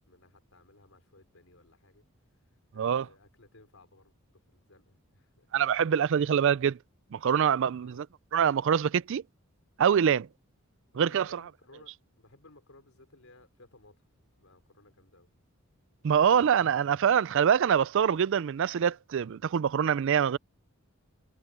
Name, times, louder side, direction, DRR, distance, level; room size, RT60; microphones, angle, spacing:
voice 1, 0.0-2.1 2.5-5.5 7.6-8.0 10.9-14.1 14.4-15.3, left 2 dB, 70° left, 4.9 m, -59 dB
voice 2, 5.5-6.8 7.1-8.1 8.3-9.2 9.8-10.3 11.0-11.4 16.0-20.4, right 8 dB, 60° right, 0.4 m, -25 dB
head